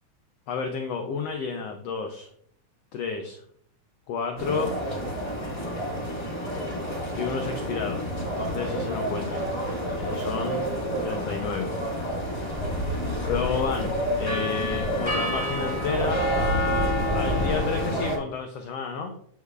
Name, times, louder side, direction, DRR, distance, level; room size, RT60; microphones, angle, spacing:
voice 1, 0.5-2.3 2.9-3.4 4.1-4.7 7.2-9.4 10.0-10.6 11.0-11.7 13.3-13.9 14.2-16.3 17.1-19.1, left 5 dB, 80° left, 4 dB, 1.4 m, -31 dB
sound 1, 4.4-18.2, equal, 35° left, 0.4 m, -28 dB
8.2 x 6.5 x 2.3 m, 0.65 s
omnidirectional pair, 3.5 m